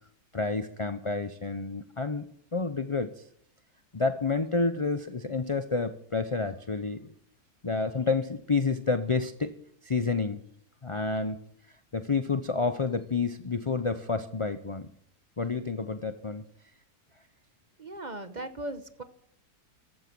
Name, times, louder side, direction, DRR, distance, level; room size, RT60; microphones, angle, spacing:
voice 1, 0.3-2.3 2.5-3.2 3.9-7.1 7.6-9.5 9.8-10.4 10.8-11.4 11.9-14.9 15.4-16.4, left 4 dB, 35° left, 10 dB, 0.4 m, -29 dB
voice 2, 17.8-19.0, right 1 dB, 30° right, 9 dB, 1.1 m, -38 dB
15.0 x 13.5 x 6.1 m, 0.68 s
omnidirectional pair, 1.7 m